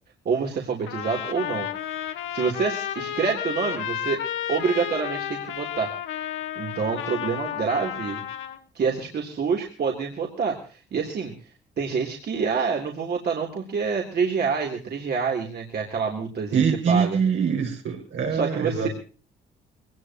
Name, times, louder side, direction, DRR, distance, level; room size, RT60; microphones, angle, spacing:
voice 1, 0.3-1.7 2.3-4.2 4.5-5.9 6.6-8.2 8.7-11.3 11.8-17.2 18.3-18.9, right 5 dB, 55° right, 0 dB, 3.7 m, -27 dB
Trumpet, 0.9-8.6, left 10 dB, 85° left, 1.8 m, -32 dB
voice 2, 16.5-18.9, right 6 dB, 75° right, 2 dB, 6.5 m, -24 dB
22.5 x 19.5 x 3.1 m, 0.37 s
cardioid pair, 90°, 20 cm